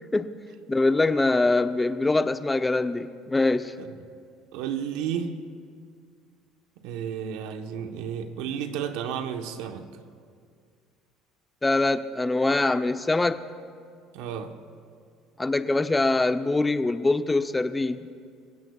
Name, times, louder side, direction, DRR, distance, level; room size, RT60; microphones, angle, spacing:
voice 1, 0.7-3.7 11.6-13.4 15.4-18.1, left 2 dB, 15° left, 0.6 m, -23 dB
voice 2, 4.5-5.4 6.8-10.0 14.1-14.6, right 8 dB, 80° right, 1.1 m, -32 dB
29.5 x 16.0 x 2.4 m
supercardioid pair, 100°, 0 cm